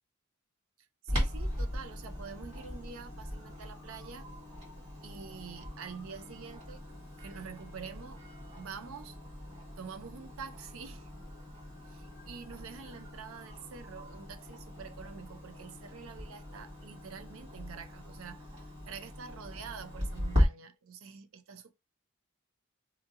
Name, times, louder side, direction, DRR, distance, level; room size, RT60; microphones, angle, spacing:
voice 1, 1.0-4.3 5.0-6.9 7.2-8.2 8.6-9.2 9.8-11.1 11.9-21.7, right 6 dB, 75° right, 0.5 m, -46 dB
Clock, 1.1-20.4, equal, 30° right, 1.7 m, -38 dB
2.7 x 2.7 x 2.5 m
head